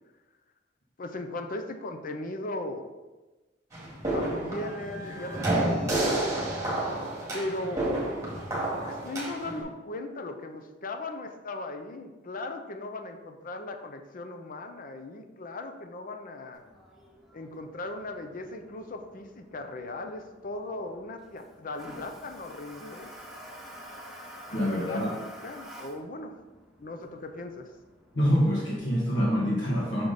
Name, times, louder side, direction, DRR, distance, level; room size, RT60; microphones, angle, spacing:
voice 1, 1.0-2.9 4.1-6.0 7.3-7.9 8.8-16.6 17.3-23.1 24.5-25.0 25.4-26.3 26.8-27.7, left 2 dB, 50° left, 6 dB, 0.6 m, -38 dB
sound 1, 3.7-9.6, right 1 dB, 15° right, 2.0 m, -30 dB
Toilet flush, 16.5-28.8, equal, ahead, 1.5 m, -49 dB
voice 2, 24.5-25.2 28.1-30.1, equal, 75° left, -4 dB, 1.4 m, -26 dB
5.9 x 4.9 x 4.0 m, 1.2 s
head